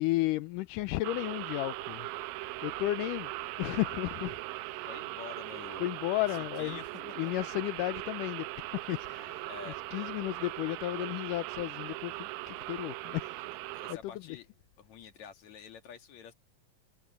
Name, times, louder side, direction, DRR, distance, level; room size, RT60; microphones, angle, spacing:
voice 1, 0.0-2.1 2.4-3.3 3.6-4.4 4.7-5.1 5.8-13.4 13.9-14.4, left 18 dB, 80° left, 2.1 m, -34 dB
sound 1, 1.0-13.9, right 20 dB, 85° right, 2.3 m, -40 dB
voice 2, 4.9-5.8 6.3-7.0 9.5-10.1 13.7-14.5 14.8-16.3, left 8 dB, 55° left, 3.1 m, -48 dB
omnidirectional pair, 4.1 m